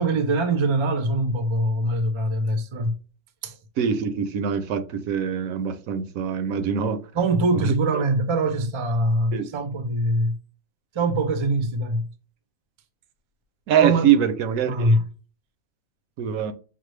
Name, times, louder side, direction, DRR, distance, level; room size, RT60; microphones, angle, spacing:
voice 1, 0.0-3.0 3.4-3.6 7.1-10.4 10.9-12.1 13.8-14.1 14.6-15.1, right 2 dB, 45° right, 0.4 m, -23 dB
voice 2, 3.8-7.1 7.5-8.0 9.3-9.5 13.7-14.9 16.2-16.5, right 8 dB, 80° right, 1.0 m, -23 dB
5.8 x 2.0 x 3.2 m
omnidirectional pair, 1.4 m